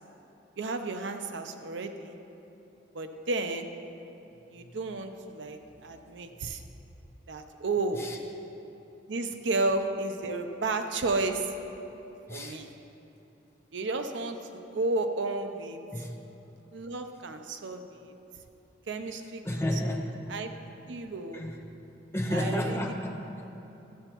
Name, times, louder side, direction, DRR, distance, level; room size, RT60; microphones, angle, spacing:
voice 1, 0.6-2.1 2.9-3.7 4.5-6.6 7.3-8.0 9.1-11.5 12.3-12.7 13.7-15.8 16.7-18.1 18.9-19.4 20.3-20.5 20.9-21.4 22.3-22.8, right 3 dB, 80° right, 7 dB, 0.6 m, -32 dB
voice 2, 12.3-12.6 15.9-16.2 19.4-20.1 21.3-21.6 22.1-23.5, left 1 dB, 15° left, 1 dB, 0.7 m, -32 dB
13.5 x 7.9 x 3.0 m, 3.0 s
head